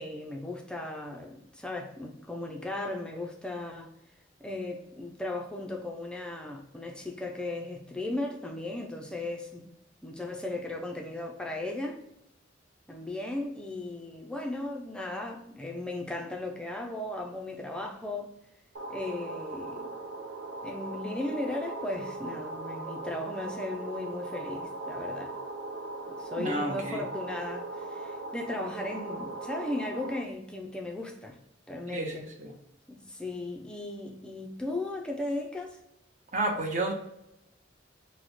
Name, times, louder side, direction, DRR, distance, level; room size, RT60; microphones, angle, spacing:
voice 1, 0.0-3.9 4.4-9.7 10.0-12.0 12.9-18.3 18.9-19.9 20.6-25.4 26.1-31.4 31.7-32.3 32.9-35.8, left 2 dB, 5° left, 0.3 m, -36 dB
sound 1, 18.8-30.2, right 2 dB, 85° right, 0.5 m, -39 dB
voice 2, 26.4-27.0 31.9-32.5 36.3-36.9, right 2 dB, 40° right, 0.6 m, -31 dB
3.0 x 2.0 x 4.0 m
head